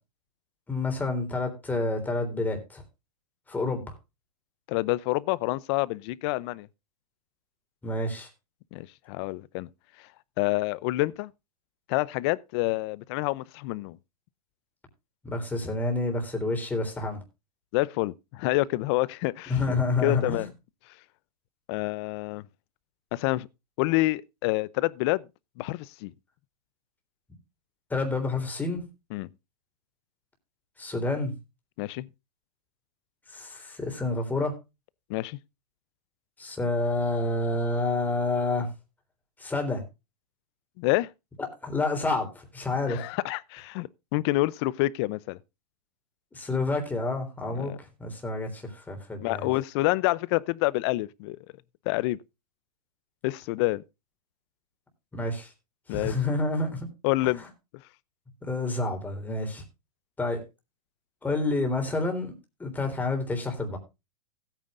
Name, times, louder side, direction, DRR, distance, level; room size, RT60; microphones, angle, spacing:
voice 1, 0.7-2.8 3.5-3.9 7.8-8.3 15.2-17.2 19.5-20.5 27.9-28.9 30.8-31.3 33.3-34.6 36.4-38.7 39.4-39.8 41.4-43.0 46.3-49.5 55.1-55.5 55.9-56.9 58.4-59.6 60.2-60.4 61.2-62.3 62.6-63.8, left 2 dB, 10° left, 3.4 m, -29 dB
voice 2, 4.7-6.7 8.7-9.7 10.4-11.3 11.9-14.0 17.7-19.8 20.0-20.5 21.7-22.4 23.1-23.5 23.8-25.2 25.6-26.1 29.1-29.3 31.8-32.1 35.1-35.4 40.8-41.1 42.9-45.4 47.5-47.8 49.2-51.4 51.9-52.2 53.2-53.8 55.9-56.2 57.0-57.4, left 20 dB, 45° left, 0.6 m, -27 dB
16.5 x 9.1 x 2.5 m
hypercardioid pair, 140°, 20 cm